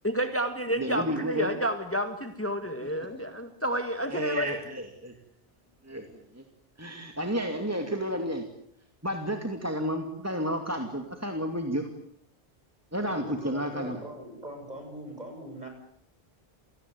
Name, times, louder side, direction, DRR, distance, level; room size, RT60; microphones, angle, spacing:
voice 1, 0.0-4.7, equal, 10° left, 7 dB, 1.8 m, -30 dB
voice 2, 0.8-1.5 4.1-5.1 5.8-6.4 6.8-8.4 9.0-11.9 12.9-14.0, equal, 15° right, 4 dB, 2.4 m, -31 dB
voice 3, 13.0-15.7, right 1 dB, 40° right, 4 dB, 7.9 m, -41 dB
29.0 x 18.5 x 9.5 m, 0.72 s
omnidirectional pair, 1.1 m